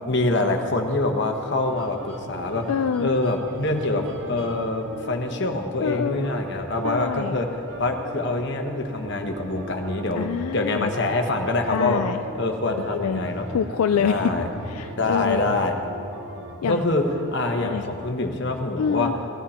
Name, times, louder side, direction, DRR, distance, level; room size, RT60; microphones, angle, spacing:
voice 1, 0.1-2.6 3.0-7.5 7.8-10.3 10.5-12.0 12.3-13.4 14.0-14.5 15.0-15.7 16.6-17.0 17.3-19.1, left 2 dB, 50° left, 4 dB, 1.2 m, -25 dB
sound 1, 1.3-18.6, right 1 dB, 55° right, 1.0 m, -39 dB
voice 2, 2.7-3.1 5.8-6.3 6.8-7.3 10.2-10.9 11.7-12.2 12.7-13.2 13.5-14.3 14.7-15.6 16.6-16.8 17.6-17.9 18.8-19.1, left 7 dB, 80° left, 9 dB, 0.4 m, -26 dB
16.5 x 12.5 x 4.3 m, 2.7 s
head